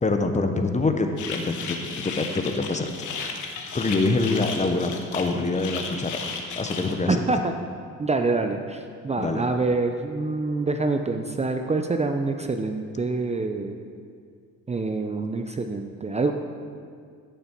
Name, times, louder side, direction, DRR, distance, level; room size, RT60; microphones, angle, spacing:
voice 1, 0.0-2.9 3.7-6.2 6.5-7.2 9.2-9.4, left 3 dB, 25° left, 6 dB, 0.9 m, -25 dB
sound 1, 1.2-6.9, left 5 dB, 80° left, 1.3 m, -34 dB
voice 2, 7.1-7.5 8.0-13.8 14.7-16.3, right 3 dB, 20° right, 6 dB, 0.6 m, -26 dB
14.5 x 6.8 x 4.5 m, 2.2 s
cardioid pair, 90°, 30 cm